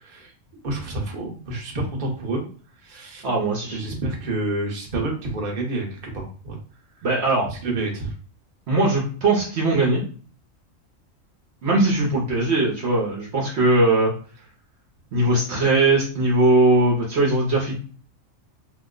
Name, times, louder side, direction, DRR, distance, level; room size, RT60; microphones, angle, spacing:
voice 1, 0.0-0.3 0.6-2.4 2.8-3.2 3.7-6.6 7.5-8.1, right 2 dB, 40° right, 0 dB, 0.9 m, -28 dB
voice 2, 3.2-3.8 7.0-7.5 8.7-10.0 11.6-14.1 15.1-17.7, right 2 dB, 60° right, -2 dB, 1.0 m, -20 dB
2.9 x 2.0 x 3.7 m, 0.41 s
omnidirectional pair, 1.4 m